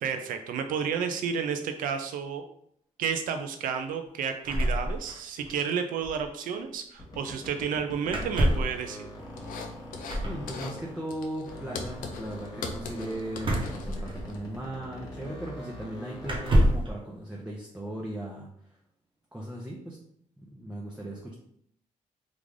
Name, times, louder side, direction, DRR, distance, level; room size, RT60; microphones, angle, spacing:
voice 1, 0.0-2.5 3.0-9.1, right 7 dB, 85° right, 7 dB, 0.4 m, -31 dB
sound 1, 4.4-5.5 5.8-5.9 6.0-6.2 8.1-8.8 10.1-10.4 13.4-14.6 15.4-15.5 16.2-16.9, equal, 40° right, 0.9 m, -26 dB
sound 2, 6.9-11.2 11.4-16.9, left 1 dB, 25° left, 1.2 m, -43 dB
sound 3, 9.4-10.2 10.5-10.8 11.1-14.4, left 4 dB, 90° left, 0.5 m, -39 dB
voice 2, 10.2-18.5 19.3-20.0 20.4-21.3, right 1 dB, 5° right, -4 dB, 0.5 m, -37 dB
3.2 x 2.4 x 3.6 m, 0.70 s
cardioid pair, 105°, 14 cm